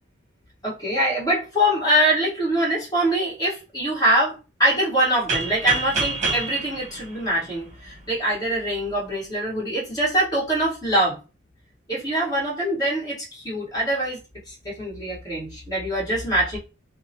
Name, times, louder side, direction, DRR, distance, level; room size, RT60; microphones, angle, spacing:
voice 1, 0.6-11.2 11.9-14.2 14.5-16.6, right 1 dB, 20° left, -7 dB, 1.4 m, -23 dB
sound 1, 5.3-8.0, right 3 dB, 40° right, 0.9 m, -28 dB
2.8 x 2.1 x 2.8 m, 0.31 s
head